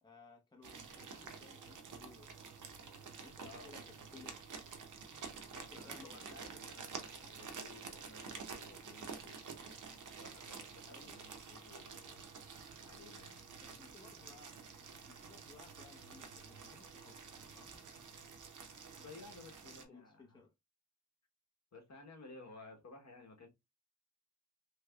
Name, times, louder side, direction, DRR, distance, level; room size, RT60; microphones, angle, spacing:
voice 1, 0.0-2.4 2.8-4.4 5.3-6.4 10.9-11.2 13.6-17.9 19.9-20.5, left 4 dB, 15° left, 0.8 m, -60 dB
sound 1, 0.6-19.8, right 5 dB, 60° right, 0.8 m, -50 dB
voice 2, 3.4-3.8 5.5-9.4 10.2-12.3 12.8-13.5 18.9-20.4 21.7-23.5, left 3 dB, 50° left, 1.1 m, -56 dB
3.2 x 3.2 x 2.3 m
wide cardioid pair, 90°, 34 cm